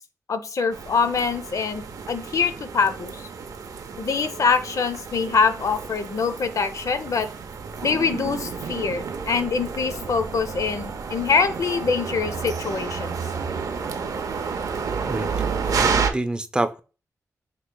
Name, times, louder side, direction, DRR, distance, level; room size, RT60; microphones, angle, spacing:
voice 1, 0.3-3.3 4.0-7.3 7.8-13.1, left 5 dB, 65° left, 11 dB, 0.5 m, -24 dB
sound 1, 0.7-16.1, right 5 dB, 85° right, 0.5 m, -30 dB
voice 2, 15.8-16.8, right 2 dB, 15° right, 11 dB, 0.4 m, -27 dB
5.9 x 3.0 x 2.2 m, 0.34 s
cardioid pair, 60°, 6 cm